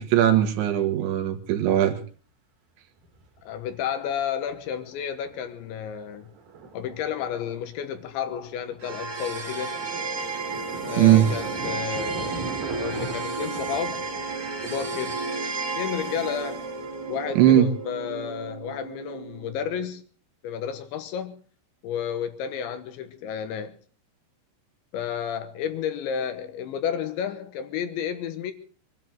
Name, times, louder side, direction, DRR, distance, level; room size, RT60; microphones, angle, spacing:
voice 1, 0.0-2.0 11.0-11.3 17.4-17.7, right 12 dB, 75° right, 3.8 m, -19 dB
Thunder, 1.6-1.7 3.0-4.1 4.6-4.9 5.3-17.7, right 3 dB, 45° right, 3.2 m, -40 dB
voice 2, 3.4-6.3 6.7-9.8 10.8-14.1 14.6-15.3 15.7-16.7 17.1-20.1 20.4-21.4 21.8-23.8 24.9-28.5, left 8 dB, 75° left, 3.4 m, -31 dB
sound 1, 8.8-19.9, right 4 dB, 30° right, 2.2 m, -33 dB
24.0 x 12.5 x 4.7 m
omnidirectional pair, 5.6 m